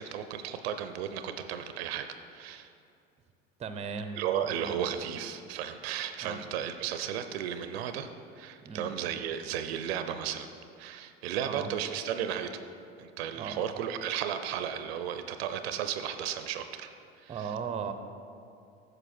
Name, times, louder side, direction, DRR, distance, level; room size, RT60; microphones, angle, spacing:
voice 1, 0.0-2.7 4.2-8.1 8.4-10.5 10.8-12.6 13.0-16.9 17.2-17.5, right 9 dB, 70° right, 9 dB, 0.6 m, -34 dB
voice 2, 3.6-4.8 6.2-6.4 8.6-8.9 11.4-11.7 13.4-13.6 17.3-17.9, right 6 dB, 20° right, 8 dB, 0.7 m, -37 dB
9.1 x 6.5 x 4.3 m, 2.6 s
hypercardioid pair, 80°, 32 cm